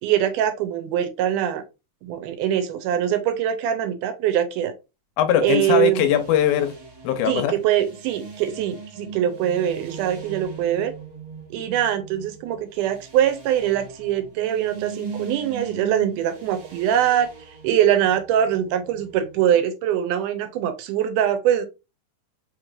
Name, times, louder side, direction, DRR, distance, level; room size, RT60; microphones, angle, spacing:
voice 1, 0.0-1.6 2.0-4.7 5.4-6.1 7.3-10.9 11.5-17.3 17.6-21.6, right 10 dB, 90° right, 2.2 m, -23 dB
voice 2, 5.2-6.7 7.0-7.5, left 10 dB, 85° left, 2.1 m, -20 dB
sound 1, 5.7-19.4, right 5 dB, 50° right, 1.5 m, -40 dB
4.9 x 3.1 x 2.4 m
omnidirectional pair, 3.6 m